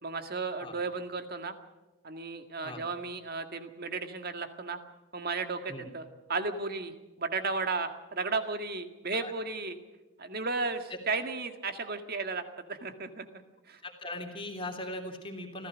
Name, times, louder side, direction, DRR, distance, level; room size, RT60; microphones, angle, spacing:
voice 1, 0.0-1.5 2.0-4.8 5.1-6.0 6.3-6.9 7.2-9.8 10.2-12.4 12.7-13.3 13.7-13.8, right 3 dB, 45° right, 7 dB, 1.9 m, -34 dB
voice 2, 13.8-15.7, left 1 dB, 25° left, 3 dB, 3.1 m, -39 dB
27.0 x 16.0 x 6.3 m, 1.1 s
head